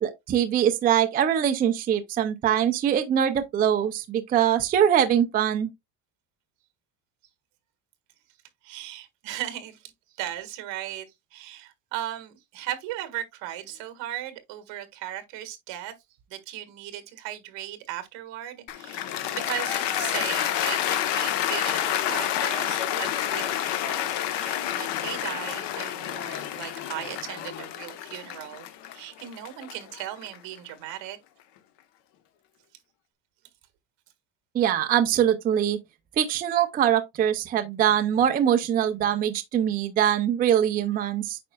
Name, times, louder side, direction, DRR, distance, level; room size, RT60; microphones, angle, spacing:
voice 1, 0.0-5.7 34.5-35.8 36.2-41.4, right 9 dB, 20° right, 0.4 m, -23 dB
voice 2, 8.6-9.9 10.2-15.9 16.3-28.7 28.9-31.2, right 13 dB, 70° right, 1.7 m, -37 dB
Cheering / Applause, 18.7-30.9, left 11 dB, 65° left, 1.1 m, -29 dB
8.5 x 5.2 x 2.2 m
cardioid pair, 175°, 45 cm